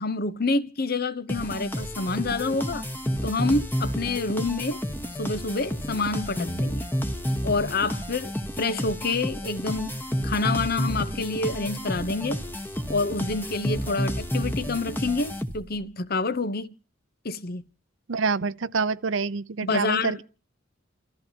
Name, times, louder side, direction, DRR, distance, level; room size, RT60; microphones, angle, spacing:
voice 1, 0.0-2.8 3.2-4.8 5.2-6.9 7.4-12.4 12.9-16.7 17.2-17.6 19.6-20.2, left 3 dB, 50° left, 0.8 m, -28 dB
sound 1, 1.3-15.9, equal, 10° left, 1.2 m, -30 dB
voice 2, 18.1-20.2, right 4 dB, 75° right, 0.7 m, -27 dB
29.5 x 14.0 x 2.8 m
head